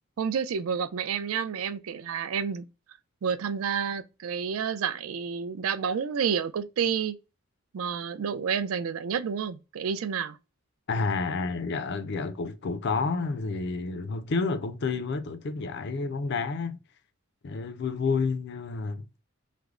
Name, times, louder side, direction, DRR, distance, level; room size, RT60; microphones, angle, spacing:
voice 1, 0.2-2.6 3.2-7.2 7.7-10.4, right 7 dB, 80° right, 0.4 m, -29 dB
voice 2, 10.9-16.8 17.4-19.2, left 4 dB, 50° left, 0.5 m, -30 dB
3.3 x 2.0 x 3.6 m
head